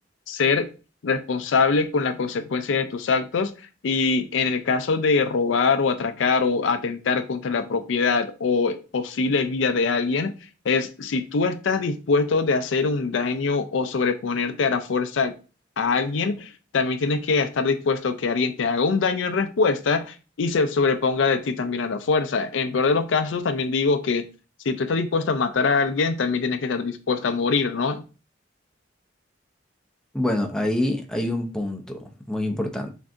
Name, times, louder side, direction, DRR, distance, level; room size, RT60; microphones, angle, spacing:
voice 1, 0.3-0.7 1.0-3.5 3.8-10.3 10.6-15.3 15.8-24.3 24.7-28.0, left 4 dB, 75° left, 0.4 m, -23 dB
voice 2, 30.1-32.9, left 1 dB, 5° left, 0.5 m, -26 dB
5.9 x 2.6 x 2.5 m
head